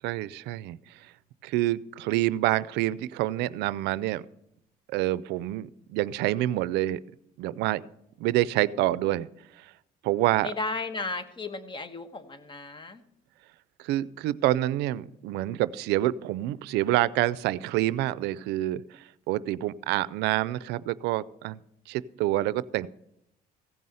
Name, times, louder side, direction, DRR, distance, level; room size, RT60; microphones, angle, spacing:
voice 1, 0.0-1.1 1.4-4.2 4.9-7.0 7.4-7.8 8.2-9.3 9.6-9.7 10.0-10.5 13.8-21.6 21.9-22.9, right 15 dB, 90° right, 19 dB, 0.4 m, -27 dB
voice 2, 10.4-13.0, left 3 dB, 30° left, 10 dB, 1.2 m, -34 dB
15.5 x 5.5 x 7.7 m, 0.79 s
cardioid pair, 110°, 17 cm